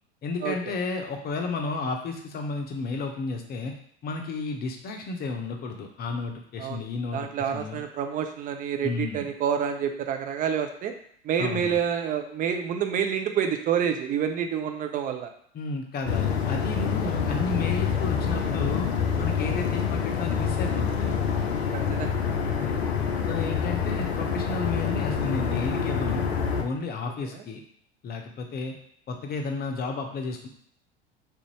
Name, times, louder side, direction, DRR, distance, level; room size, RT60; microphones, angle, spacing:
voice 1, 0.2-3.8 4.0-7.8 8.8-9.3 11.4-11.8 15.5-18.9 19.2-21.0 22.6-22.8 23.3-26.2 26.6-27.6 28.0-28.7 29.1-30.5, left 3 dB, 30° left, 3 dB, 0.7 m, -32 dB
voice 2, 7.1-10.9 11.2-15.3 21.7-22.2 27.3-27.4, right 8 dB, 25° right, 6 dB, 0.4 m, -28 dB
sound 1, 16.1-26.6, left 6 dB, 80° left, 0.5 m, -26 dB
3.3 x 2.6 x 3.1 m, 0.65 s
figure-of-eight pair, 75°, 32 cm